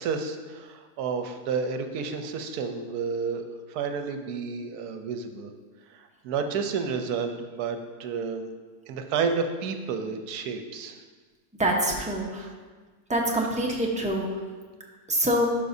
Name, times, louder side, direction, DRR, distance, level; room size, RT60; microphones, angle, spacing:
voice 1, 0.0-5.5 5.9-8.5 8.9-11.0 12.3-12.5, right 5 dB, 80° right, 7 dB, 1.2 m, -31 dB
voice 2, 11.6-12.4 13.1-14.3 15.1-15.5, right 1 dB, 5° right, -2 dB, 0.6 m, -25 dB
11.5 x 5.4 x 2.7 m, 1.4 s
omnidirectional pair, 1.7 m